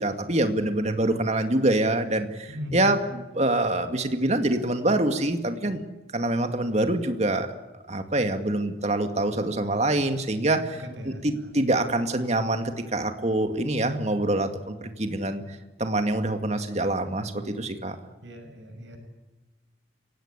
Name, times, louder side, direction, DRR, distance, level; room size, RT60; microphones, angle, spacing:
voice 1, 0.0-5.8 6.1-7.5 7.9-18.0, right 1 dB, 35° right, 7 dB, 2.2 m, -25 dB
voice 2, 10.6-11.2 18.2-19.0, left 1 dB, 85° right, 5 dB, 6.4 m, -38 dB
29.5 x 17.5 x 8.3 m, 1.1 s
head